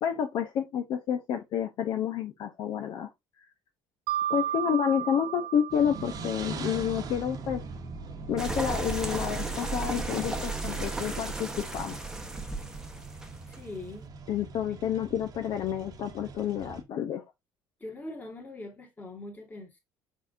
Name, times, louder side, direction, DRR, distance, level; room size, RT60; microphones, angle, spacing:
voice 1, 0.0-3.1 4.3-7.6 8.3-12.1 14.3-17.2, left 8 dB, 60° left, 0.7 m, -29 dB
Mallet percussion, 4.1-6.8, right 11 dB, 85° right, 0.6 m, -33 dB
sound 1, 5.7-16.8, right 3 dB, 45° right, 1.0 m, -42 dB
sound 2, 8.4-13.8, right 2 dB, 5° right, 0.9 m, -34 dB
voice 2, 13.5-14.2 17.8-19.8, left 2 dB, 20° left, 1.7 m, -42 dB
4.6 x 4.4 x 2.5 m
cardioid pair, 110°, 9 cm